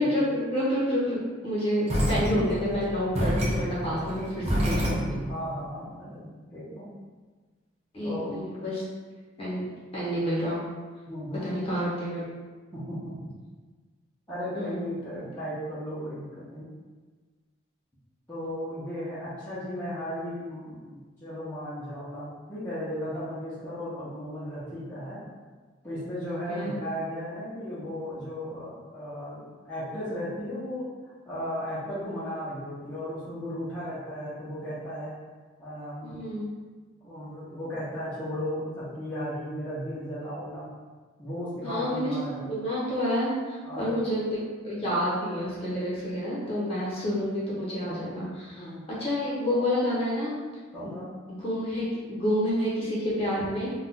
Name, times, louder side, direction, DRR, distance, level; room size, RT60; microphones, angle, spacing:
voice 1, 0.0-5.2 7.9-8.8 9.4-10.6 11.4-12.3 14.5-15.0 26.5-26.7 36.0-36.5 41.6-42.1 42.5-44.4 44.6-48.7 49.0-50.3 50.8-51.0 51.3-53.7, equal, 30° left, -8 dB, 1.0 m, -29 dB
sound 1, 1.9-5.4, equal, 35° right, 0.6 m, -28 dB
voice 2, 5.3-6.9 8.0-8.4 11.1-11.5 12.7-13.3 14.3-16.7 18.3-25.2 25.8-35.1 35.6-36.3 37.0-40.7 41.2-42.5 43.6-44.0 46.6-46.8 48.5-48.8 50.7-51.1, equal, 10° left, -14 dB, 0.7 m, -35 dB
2.4 x 2.3 x 4.0 m, 1.4 s
head